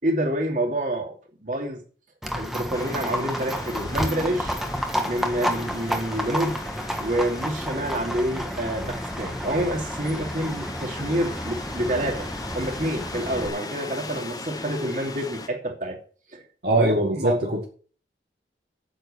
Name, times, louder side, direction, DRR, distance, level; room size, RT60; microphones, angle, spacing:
voice 1, 0.0-1.8 2.3-4.6 5.0-6.6 7.0-12.3 12.5-16.0 16.3-16.4 16.8-17.4, right 1 dB, 45° right, 2.8 m, -27 dB
Livestock farm animals working animals, 2.2-13.5, equal, ahead, 1.3 m, -31 dB
sound 1, 2.7-15.5, left 2 dB, 20° left, 1.1 m, -38 dB
voice 2, 16.6-17.6, right 1 dB, 65° right, 2.2 m, -22 dB
9.0 x 7.7 x 8.3 m
head